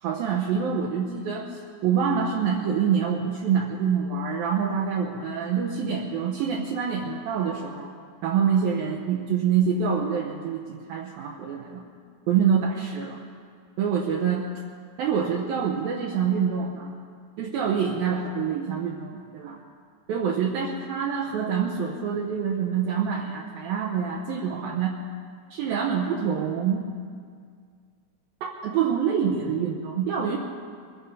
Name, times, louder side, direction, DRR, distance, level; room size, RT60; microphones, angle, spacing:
voice 1, 0.0-7.9 8.2-11.9 12.3-13.2 13.8-14.5 15.0-16.9 17.4-19.6 20.1-25.0 25.5-26.9 28.4-30.4, right 7 dB, 75° right, -1 dB, 2.4 m, -26 dB
22.0 x 10.0 x 5.5 m, 2.1 s
omnidirectional pair, 4.8 m